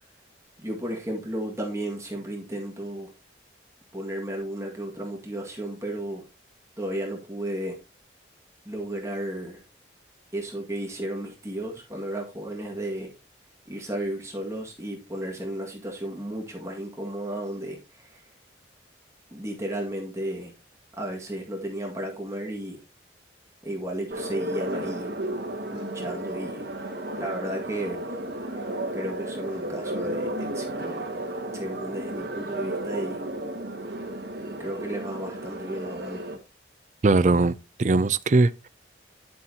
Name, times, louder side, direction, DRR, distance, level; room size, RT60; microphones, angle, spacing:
voice 1, 0.6-3.1 3.9-6.3 6.8-7.8 8.7-9.6 10.3-13.1 13.7-18.3 19.3-20.5 21.0-22.8 23.6-25.1 25.7-26.6 27.2-28.1 28.9-31.1 31.5-33.2 34.6-36.4, right 1 dB, 15° right, 1.9 m, -33 dB
sound 1, 24.1-36.4, right 1 dB, 55° right, 1.8 m, -33 dB
voice 2, 37.0-38.7, right 3 dB, 40° right, 0.4 m, -21 dB
10.5 x 7.8 x 2.8 m
head